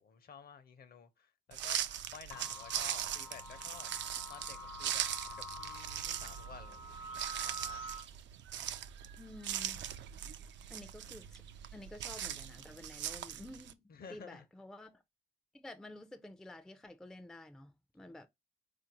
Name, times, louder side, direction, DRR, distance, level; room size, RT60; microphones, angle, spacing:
voice 1, 0.0-1.8 2.1-3.9 4.3-5.0 5.4-6.8 7.4-7.8 13.9-14.5, left 6 dB, 50° left, 0.7 m, -52 dB
sound 1, 1.5-13.7, right 10 dB, 65° right, 0.4 m, -40 dB
sound 2, 2.3-8.0, equal, 85° left, 0.9 m, -47 dB
voice 2, 9.2-9.8 10.7-11.4 11.7-15.0 15.5-18.3, left 1 dB, 5° left, 0.4 m, -51 dB
4.0 x 2.5 x 2.9 m
cardioid pair, 90°, 20 cm